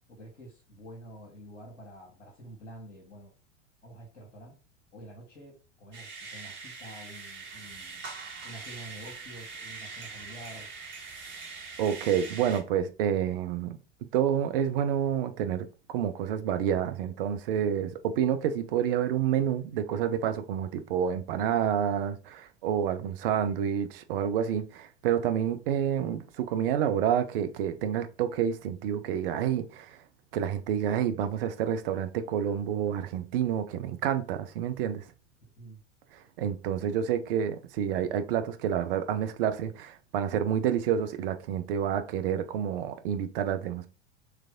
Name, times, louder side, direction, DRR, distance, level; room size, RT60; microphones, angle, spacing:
voice 1, 0.1-3.3 3.8-4.6 4.9-8.1 8.4-10.7 35.5-35.8, right 1 dB, 75° left, 1.5 m, -48 dB
sound 1, 5.9-12.6, right 4 dB, 30° right, 2.0 m, -42 dB
voice 2, 11.8-13.8 14.1-30.0 30.3-35.0 36.4-43.9, right 9 dB, 50° right, 0.7 m, -29 dB
3.3 x 3.3 x 3.7 m
figure-of-eight pair, 85°, 36 cm